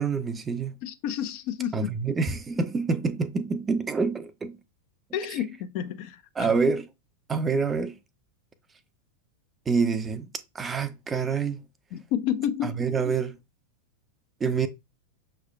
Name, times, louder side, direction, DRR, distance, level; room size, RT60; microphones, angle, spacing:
voice 1, 0.0-0.7 1.7-4.6 6.4-6.9 7.3-7.9 9.7-10.3 10.5-11.6 12.8-13.4 14.4-14.7, right 5 dB, 15° right, 0.5 m, -26 dB
voice 2, 0.8-1.9 5.1-6.5 11.9-12.8, left 10 dB, 45° left, 0.6 m, -30 dB
6.2 x 3.2 x 2.4 m
figure-of-eight pair, 90°, 0 cm